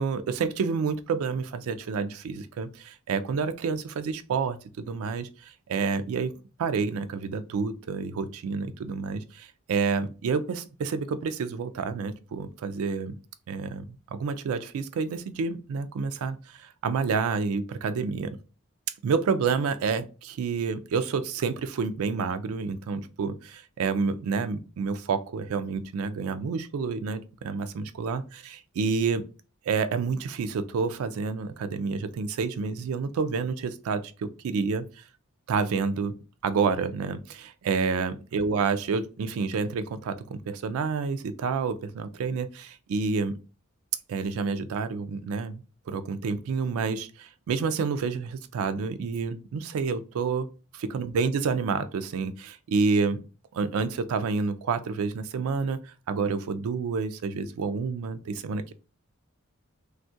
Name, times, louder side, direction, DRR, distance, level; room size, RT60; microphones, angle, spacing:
voice 1, 0.0-6.3 6.6-13.1 13.5-13.9 14.1-18.4 19.0-29.2 29.7-34.8 35.5-36.2 36.4-43.4 44.1-50.5 50.7-53.2 53.5-58.7, right 5 dB, 85° right, 0.3 m, -29 dB
2.3 x 2.1 x 2.6 m
head